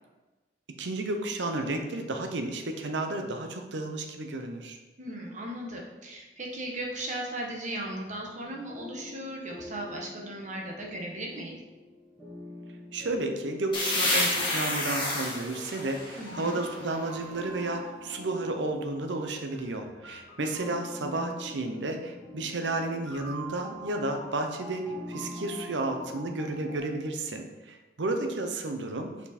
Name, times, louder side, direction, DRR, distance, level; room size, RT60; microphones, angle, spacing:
voice 1, 0.8-4.8 12.9-29.1, right 2 dB, 85° right, 5 dB, 0.7 m, -32 dB
voice 2, 5.0-11.6 16.1-16.6, right 1 dB, 45° right, 0 dB, 1.1 m, -37 dB
sound 1, 8.4-26.8, equal, 5° right, 1.6 m, -45 dB
sound 2, 13.7-17.3, left 2 dB, 30° left, 1.6 m, -30 dB
5.7 x 4.5 x 4.2 m, 1.2 s
head